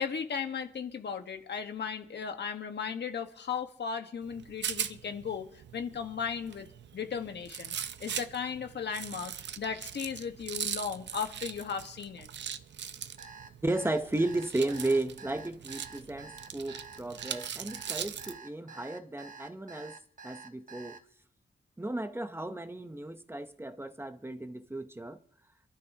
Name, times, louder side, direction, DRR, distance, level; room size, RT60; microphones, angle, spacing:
voice 1, 0.0-6.7 6.9-7.7 8.0-12.3, left 6 dB, 70° left, 1.4 m, -36 dB
Rattle, 4.2-18.4, right 8 dB, 80° right, 0.7 m, -41 dB
Alarm, 13.2-21.0, right 4 dB, 45° right, 1.3 m, -48 dB
voice 2, 13.6-20.0 20.2-21.0 21.8-25.2, right 2 dB, 15° right, 0.8 m, -34 dB
27.0 x 12.5 x 2.9 m
wide cardioid pair, 115°, 18 cm